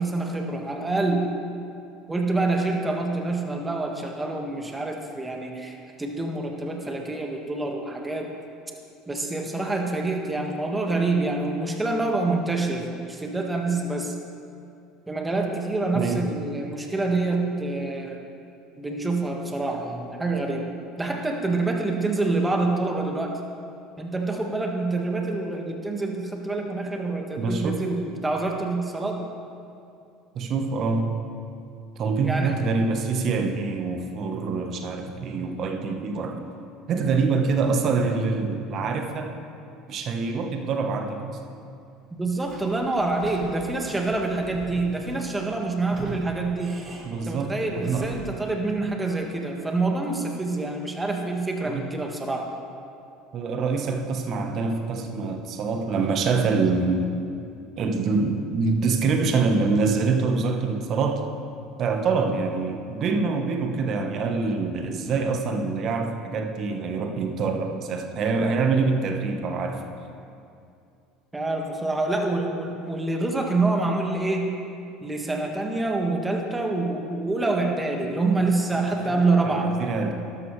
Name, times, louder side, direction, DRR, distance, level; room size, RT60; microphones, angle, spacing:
voice 1, 0.0-1.3 2.1-8.3 9.1-14.1 15.1-18.2 18.8-20.7 21.0-23.4 24.0-29.3 32.2-32.6 42.2-46.8 47.2-52.5 71.3-74.6 75.0-79.7, right 2 dB, 15° right, 2 dB, 1.7 m, -26 dB
voice 2, 15.9-16.3 27.4-27.8 30.3-31.2 32.0-36.4 36.9-39.3 39.9-41.4 47.0-48.1 51.6-51.9 53.3-57.1 57.8-61.2 61.8-69.8 79.1-80.1, right 4 dB, 50° right, 4 dB, 1.2 m, -25 dB
Sliding door / Squeak, 42.3-48.5, right 2 dB, 30° right, 1.9 m, -42 dB
12.5 x 12.0 x 3.3 m, 2.5 s
hypercardioid pair, 75°, 0 cm